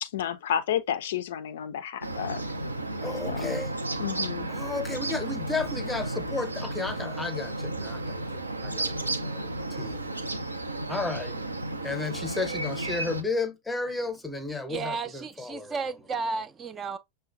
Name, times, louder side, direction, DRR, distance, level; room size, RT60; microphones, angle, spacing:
voice 1, 0.0-2.4 3.3-3.5 4.0-4.5, left 9 dB, 60° left, 0.3 m, -31 dB
sound 1, 2.0-13.2, right 2 dB, 80° right, 0.5 m, -33 dB
voice 2, 3.0-3.8 4.5-10.3 10.9-11.4 11.8-15.8, left 3 dB, 5° left, 0.7 m, -33 dB
voice 3, 14.7-17.0, right 4 dB, 25° right, 0.4 m, -33 dB
6.1 x 2.2 x 2.5 m
figure-of-eight pair, 90°, 0 cm